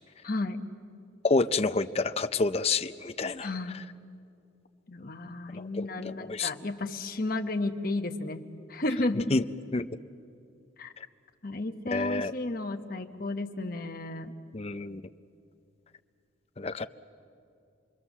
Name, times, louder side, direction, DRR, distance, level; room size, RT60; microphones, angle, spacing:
voice 1, 0.2-0.7 3.4-3.8 4.9-9.3 10.8-10.9 11.4-14.3, left 2 dB, 45° left, 6 dB, 1.0 m, -33 dB
voice 2, 1.2-3.5 5.5-6.5 9.3-9.4 9.7-9.9 11.9-12.3 14.5-15.0 16.6-16.9, left 3 dB, 30° left, 10 dB, 0.5 m, -28 dB
27.5 x 22.0 x 7.2 m, 2.5 s
head